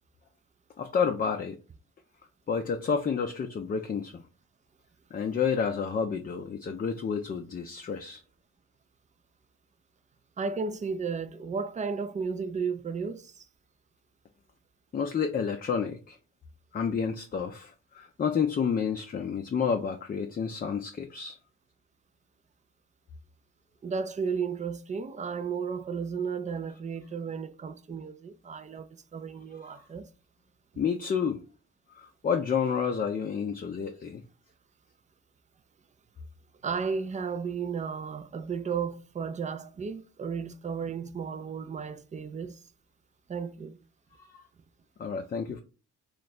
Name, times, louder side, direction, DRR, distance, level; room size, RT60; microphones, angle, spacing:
voice 1, 0.8-1.6 2.5-4.2 5.1-8.2 14.9-16.2 16.7-21.4 29.6-29.8 30.8-31.4 31.9-34.2 45.0-45.6, left 6 dB, 30° left, 0.5 m, -30 dB
voice 2, 10.4-13.5 23.8-30.1 36.6-42.6 43.3-43.8, right 5 dB, 25° right, 0.4 m, -34 dB
3.2 x 2.4 x 4.1 m
cardioid pair, 90°, 30 cm